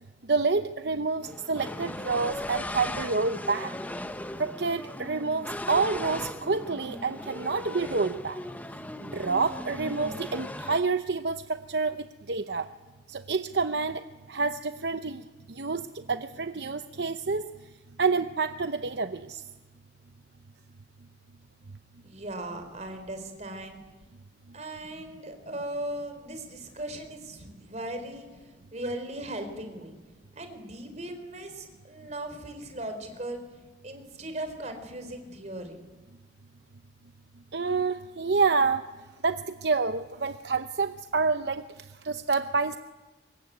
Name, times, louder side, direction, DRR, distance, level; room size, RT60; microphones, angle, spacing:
voice 1, 0.3-3.7 4.4-8.4 9.0-12.7 13.1-14.0 14.3-15.2 15.6-17.4 18.0-19.4 37.5-38.8 39.2-41.6 42.0-42.8, right 4 dB, 65° right, 9 dB, 0.8 m, -28 dB
sound 1, 1.2-10.8, left 1 dB, 10° left, 1.0 m, -38 dB
voice 2, 22.0-23.8 24.5-29.9 30.4-33.4 33.8-35.8, right 1 dB, 40° right, 7 dB, 4.3 m, -38 dB
25.0 x 22.0 x 9.3 m, 1.3 s
head